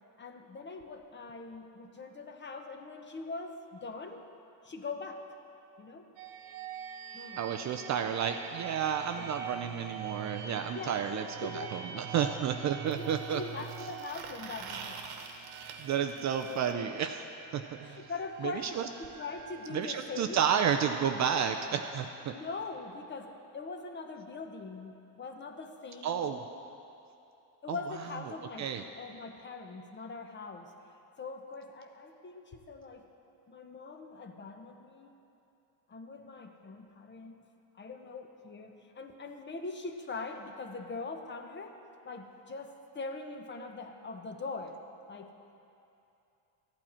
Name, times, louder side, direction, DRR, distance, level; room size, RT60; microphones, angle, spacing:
voice 1, 0.2-4.2 4.6-5.3 5.8-6.0 7.1-7.4 9.1-9.3 10.7-12.1 12.6-12.7 13.0-15.0 16.6-16.7 17.8-20.5 22.3-26.3 27.6-28.7 28.9-30.7 31.2-33.1 33.5-35.2 35.9-37.4 37.7-41.7 42.0-44.8 45.1-45.3, left 3 dB, 25° left, 5 dB, 0.8 m, -42 dB
sound 1, 6.2-21.8, right 7 dB, 90° right, 0.7 m, -45 dB
voice 2, 7.4-13.4 15.8-18.0 18.4-18.9 19.7-22.3 26.0-26.4 27.7-27.8 28.6-28.8, right 8 dB, 40° right, 7 dB, 0.4 m, -31 dB
sound 2, 12.9-16.7 18.6-18.7 19.0-19.1 19.4-19.5 20.4-20.5, right 5 dB, 55° right, 1.2 m, -47 dB
13.5 x 8.9 x 4.3 m, 2.7 s
cardioid pair, 115°, 46 cm